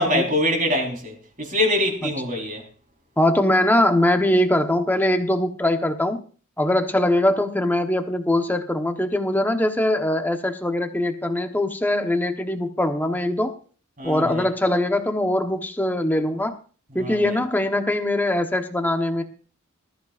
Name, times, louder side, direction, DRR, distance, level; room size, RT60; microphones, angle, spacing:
voice 1, 0.0-2.6 14.0-14.5 16.9-17.4, left 1 dB, 40° right, 4.2 m, -24 dB
voice 2, 3.2-6.2 6.6-13.5 14.0-16.6 16.9-19.2, left 1 dB, 10° left, 1.1 m, -22 dB
20.0 x 13.5 x 2.5 m
head